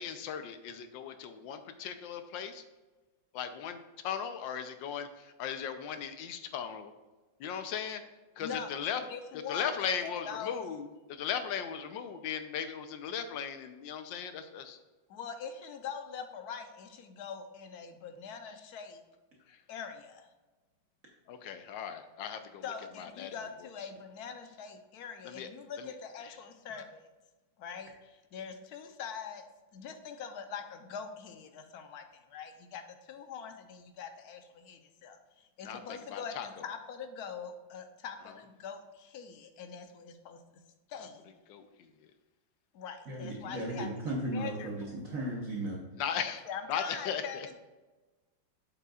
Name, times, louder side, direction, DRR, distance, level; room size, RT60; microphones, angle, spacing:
voice 1, 0.0-2.6 3.3-3.8 4.0-5.1 5.4-6.9 7.4-8.0 8.4-9.0 9.5-14.8 21.3-22.6 23.0-23.3 25.2-25.5 35.6-36.5 41.5-41.6 46.0-46.4 46.7-47.2, left 8 dB, 80° left, 8 dB, 1.4 m, -37 dB
voice 2, 8.4-10.7 15.1-19.0 19.7-20.3 22.6-27.0 27.6-29.4 29.7-40.4 40.9-41.3 42.7-43.9 44.3-44.9 46.5-47.5, left 6 dB, 65° left, 7 dB, 1.2 m, -43 dB
voice 3, 43.1-45.8, right 1 dB, 50° right, -2 dB, 1.4 m, -36 dB
7.9 x 7.5 x 2.4 m, 1.2 s
omnidirectional pair, 2.0 m